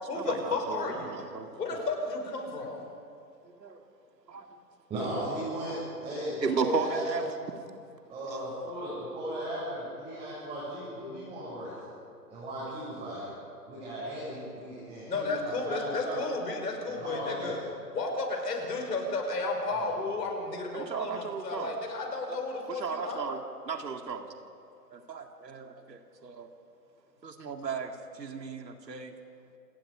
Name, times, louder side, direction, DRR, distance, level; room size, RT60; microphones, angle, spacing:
voice 1, 0.0-1.2 1.6-2.8 15.1-17.6 17.9-23.3, left 3 dB, 75° left, 2 dB, 5.7 m, -33 dB
voice 2, 0.7-1.5 3.6-3.8 4.3-4.5 6.4-7.2 8.3-8.4 20.7-21.7 22.7-23.4 23.7-24.3 24.9-26.5 27.2-27.9 28.2-29.1, right 5 dB, 85° right, 4 dB, 2.3 m, -34 dB
voice 3, 4.9-7.2 8.1-11.8 12.3-13.3 13.6-16.2 16.9-17.5 19.7-20.0, right 1 dB, 10° right, -9 dB, 6.6 m, -36 dB
28.0 x 19.5 x 5.0 m, 2.5 s
hypercardioid pair, 150°, 49 cm